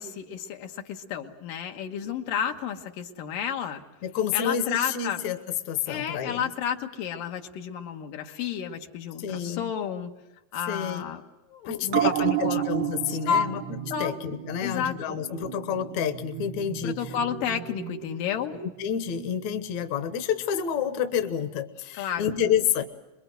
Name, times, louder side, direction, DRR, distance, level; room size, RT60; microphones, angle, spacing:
voice 1, 0.0-3.8 4.3-5.2 5.9-10.1 10.5-11.2 11.5-12.6 13.1-13.5 13.9-14.1 14.6-15.4 16.8-18.6 21.9-22.3, left 8 dB, 80° left, 3 dB, 3.0 m, -31 dB
voice 2, 4.0-5.4 5.7-6.4 9.2-9.7 10.7-11.0 11.7-17.0 18.5-22.8, left 8 dB, 65° left, 8 dB, 2.3 m, -29 dB
sound 1, 11.9-18.8 19.1-19.2, right 12 dB, 80° right, 1.1 m, -32 dB
27.0 x 22.0 x 8.0 m, 0.98 s
omnidirectional pair, 3.8 m